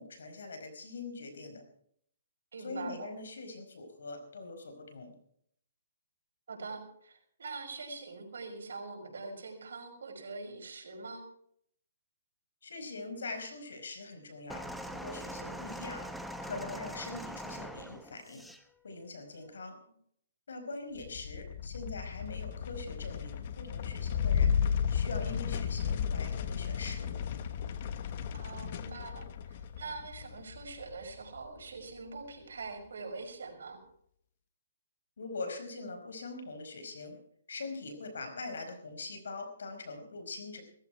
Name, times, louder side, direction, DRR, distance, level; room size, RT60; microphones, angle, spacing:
voice 1, 0.0-1.6 2.6-5.1 12.6-14.6 14.9-16.0 16.4-18.4 18.8-19.8 20.5-24.6 24.9-27.2 35.2-37.2 37.5-40.6, left 3 dB, 80° left, 7 dB, 4.8 m, -42 dB
voice 2, 2.5-3.1 6.5-11.2 28.3-33.8, right 4 dB, 75° right, 1 dB, 5.6 m, -43 dB
sound 1, 14.5-18.6 19.5-19.6, equal, ahead, 0.9 m, -42 dB
sound 2, 21.0-31.6, left 7 dB, 45° left, 1.3 m, -34 dB
17.5 x 15.0 x 4.6 m, 0.67 s
hypercardioid pair, 150°, 0 cm